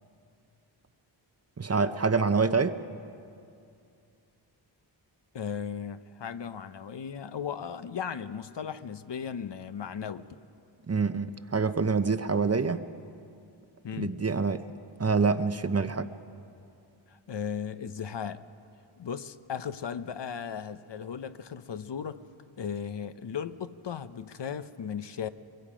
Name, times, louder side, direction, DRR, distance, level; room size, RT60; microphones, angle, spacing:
voice 1, 1.6-2.8 10.9-12.8 14.0-14.6 15.0-16.1, right 4 dB, 30° right, 11 dB, 0.8 m, -26 dB
voice 2, 5.3-10.3 13.8-14.2 17.1-18.4 19.0-22.2 22.6-25.3, left 7 dB, 60° left, 11 dB, 0.9 m, -36 dB
24.0 x 22.0 x 5.1 m, 2.5 s
cardioid pair, 60°, 48 cm